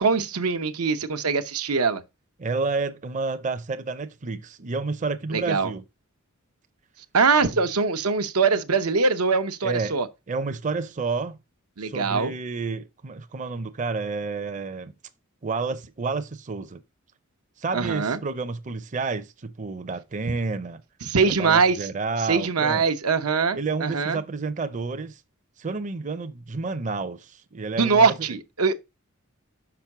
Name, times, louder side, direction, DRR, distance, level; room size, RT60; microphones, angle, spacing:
voice 1, 0.0-2.0 5.3-5.7 7.1-10.1 11.8-12.3 17.7-18.2 21.0-21.9 22.3-24.2 27.8-28.7, right 4 dB, 90° right, 0.9 m, -22 dB
voice 2, 2.4-5.8 9.6-10.0 10.3-11.4 11.8-14.9 15.4-16.8 17.6-20.8 21.4-22.8 23.5-25.2 25.6-28.1, right 4 dB, 35° right, 0.6 m, -30 dB
6.0 x 5.3 x 5.9 m
head